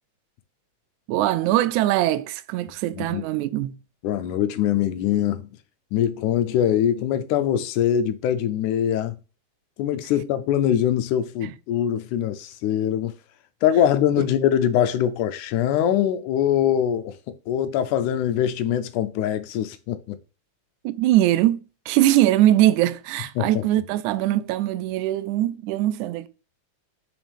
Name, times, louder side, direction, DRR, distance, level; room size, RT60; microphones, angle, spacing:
voice 1, 1.1-3.8 11.4-11.5 20.8-26.3, right 14 dB, 85° right, 1.9 m, -21 dB
voice 2, 4.0-5.5 5.9-9.2 9.8-13.2 13.6-17.1 17.5-20.2 23.4-23.7, left 10 dB, 90° left, 2.2 m, -23 dB
7.2 x 5.5 x 3.5 m
omnidirectional pair, 3.4 m